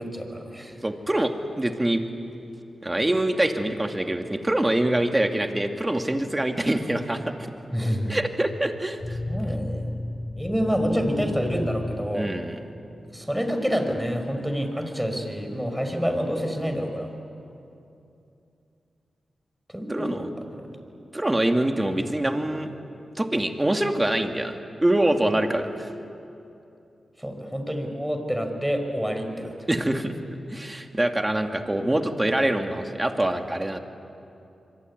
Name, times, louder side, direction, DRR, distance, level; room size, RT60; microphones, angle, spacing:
voice 1, 0.0-0.8 7.7-8.1 9.3-10.0 10.4-12.3 13.1-17.1 19.7-20.3 20.7-20.8 25.3-25.4 27.2-29.5, equal, 5° right, 5 dB, 5.2 m, -28 dB
voice 2, 0.8-2.0 2.8-7.3 8.1-9.2 12.1-12.6 19.9-20.3 21.1-22.7 23.2-25.9 29.7-30.1 30.5-33.8, right 1 dB, 20° right, 4 dB, 2.5 m, -25 dB
sound 1, 9.0-12.7, left 1 dB, 30° left, 2.6 m, -33 dB
25.5 x 23.0 x 9.7 m, 2.7 s
cardioid pair, 50°, 0 cm